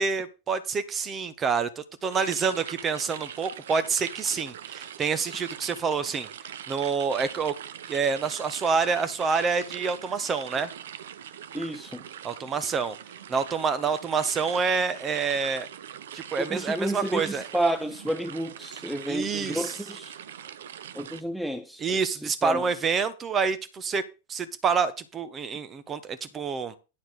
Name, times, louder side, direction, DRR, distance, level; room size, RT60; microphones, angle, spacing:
voice 1, 0.0-6.3 6.7-7.5 7.9-10.7 12.2-13.0 13.3-15.7 16.1-17.4 19.1-19.7 21.8-24.0 24.3-26.7, right 5 dB, 25° right, 1.2 m, -27 dB
sound 1, 2.1-21.2, right 9 dB, 60° right, 0.6 m, -42 dB
voice 2, 11.5-12.0 16.4-20.2 20.9-22.7, right 1 dB, ahead, 0.7 m, -31 dB
9.7 x 4.2 x 6.4 m
figure-of-eight pair, 90°, 0 cm